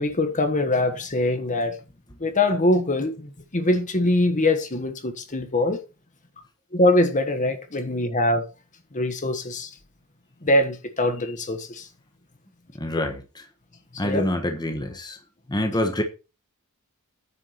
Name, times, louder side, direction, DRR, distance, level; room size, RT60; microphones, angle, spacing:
voice 1, 0.0-1.8 2.2-5.8 6.7-8.5 8.9-9.7 10.4-11.9 14.0-14.3, left 1 dB, 35° left, 1.4 m, -23 dB
voice 2, 12.8-13.2 14.0-15.2 15.5-16.0, left 1 dB, 20° left, 1.3 m, -26 dB
9.8 x 4.7 x 6.7 m
head